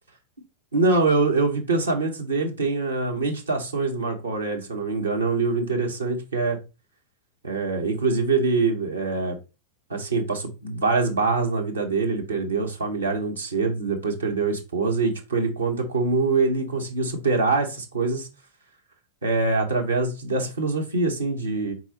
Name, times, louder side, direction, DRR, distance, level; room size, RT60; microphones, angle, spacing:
voice 1, 0.7-6.6 7.4-9.4 9.9-18.3 19.2-21.7, right 3 dB, 75° right, 1 dB, 1.1 m, -24 dB
4.4 x 4.0 x 3.0 m, 0.28 s
figure-of-eight pair, 90°, 0 cm